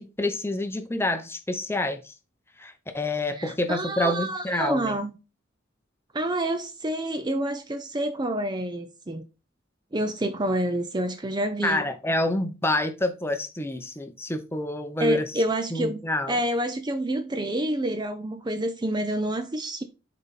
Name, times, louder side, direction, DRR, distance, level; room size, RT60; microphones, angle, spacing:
voice 1, 0.0-2.1 2.6-5.0 11.6-15.4 15.7-16.4, left 1 dB, 10° left, 0.7 m, -28 dB
voice 2, 3.4-5.2 6.1-9.2 9.9-11.9 15.0-16.0 16.3-19.8, right 1 dB, 20° right, 0.5 m, -28 dB
7.2 x 4.1 x 4.1 m
head